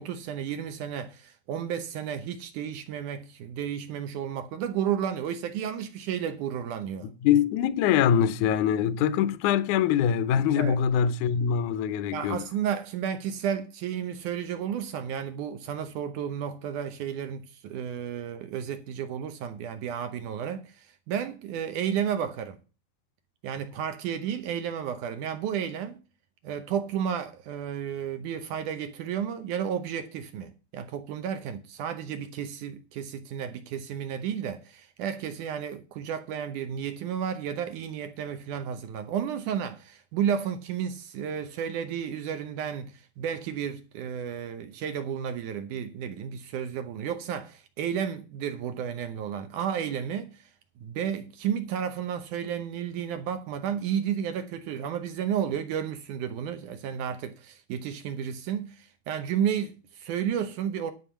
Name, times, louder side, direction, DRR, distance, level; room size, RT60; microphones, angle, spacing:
voice 1, 0.0-7.1 10.6-10.8 12.1-22.6 23.4-26.0 26.4-50.5 50.8-60.9, right 8 dB, 75° right, 1.9 m, -32 dB
voice 2, 7.0-12.4, left 9 dB, 80° left, 1.8 m, -24 dB
11.0 x 5.6 x 6.9 m
omnidirectional pair, 4.5 m